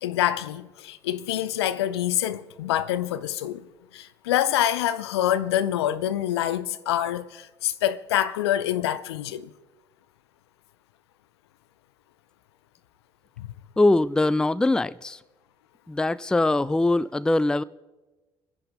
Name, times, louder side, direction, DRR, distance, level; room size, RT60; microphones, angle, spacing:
voice 1, 0.0-3.7 3.9-9.5 13.4-13.5, left 12 dB, 70° left, 0.6 m, -26 dB
voice 2, 13.8-15.2 15.9-17.6, left 2 dB, 5° left, 0.4 m, -22 dB
28.5 x 11.0 x 4.0 m
figure-of-eight pair, 50°, 14 cm